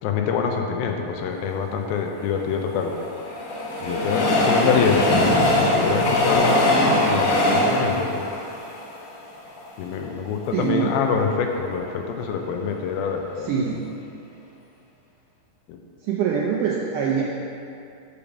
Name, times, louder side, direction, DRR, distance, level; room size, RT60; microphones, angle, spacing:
voice 1, 0.0-2.9 3.8-6.7 6.9-8.3 9.8-13.8 15.7-15.8, left 6 dB, 80° left, 3 dB, 2.4 m, -25 dB
Train, 2.4-9.7 10.2-10.3 10.5-10.6, left 1 dB, 60° left, 1.6 m, -21 dB
voice 2, 10.5-10.9 13.4-13.9 16.0-17.2, right 7 dB, 80° right, -3 dB, 1.8 m, -24 dB
7.0 x 5.0 x 7.0 m, 2.6 s
omnidirectional pair, 4.4 m